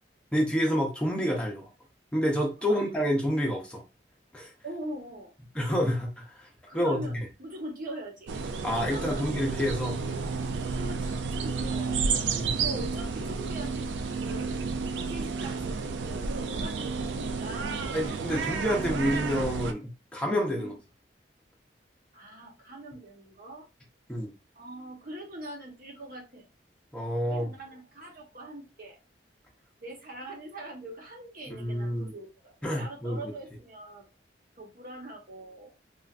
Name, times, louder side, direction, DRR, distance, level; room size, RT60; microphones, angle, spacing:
voice 1, 0.3-1.7 2.1-3.8 4.3-4.5 5.6-7.1 8.6-10.0 12.3-12.7 17.9-19.8 20.1-20.7 24.1-24.3 26.9-27.5 31.6-32.1 32.6-33.2, equal, 5° left, -1 dB, 0.6 m, -28 dB
voice 2, 4.6-5.3 6.7-8.5 8.9-9.2 10.8-12.1 12.6-14.7 15.1-17.8 18.2-19.0 20.5-20.8 22.1-23.7 24.5-26.5 27.3-29.0 29.8-34.1 34.6-35.7, right 1 dB, 50° right, 0 dB, 0.9 m, -42 dB
sound 1, 8.3-19.7, right 4 dB, 85° right, 0.4 m, -31 dB
3.2 x 2.4 x 2.4 m, 0.26 s
head